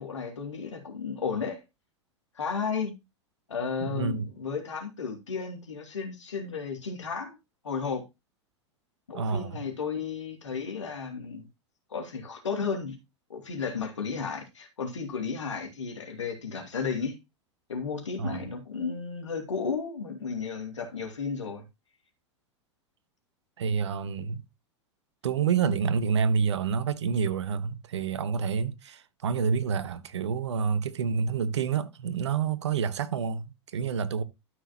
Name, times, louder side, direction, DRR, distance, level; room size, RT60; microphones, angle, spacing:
voice 1, 0.0-1.6 2.4-2.9 3.5-7.4 7.6-8.0 9.1-11.5 11.9-13.0 13.3-17.2 17.7-21.6, left 5 dB, 80° left, 2.6 m, -33 dB
voice 2, 3.8-4.3 9.1-9.6 18.2-18.5 23.6-24.4 25.2-34.2, right 6 dB, 70° right, 0.9 m, -28 dB
12.5 x 6.1 x 2.9 m
figure-of-eight pair, 90°, 15 cm